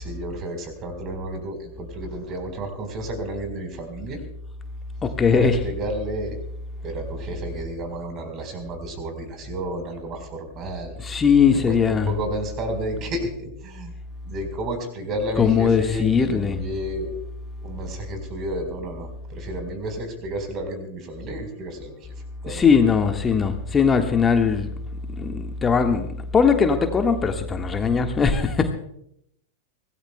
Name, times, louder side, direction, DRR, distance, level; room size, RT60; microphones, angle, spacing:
voice 1, 0.0-4.2 5.3-6.4 6.8-11.0 11.5-13.9 14.3-17.1 17.6-22.1 22.4-22.7, right 1 dB, 35° right, 6 dB, 4.2 m, -31 dB
voice 2, 5.0-5.6 11.0-12.1 13.1-13.2 15.4-16.6 22.5-24.7 25.2-28.7, left 6 dB, 20° left, 6 dB, 1.5 m, -20 dB
25.0 x 18.0 x 2.2 m, 0.74 s
figure-of-eight pair, 90°, 0 cm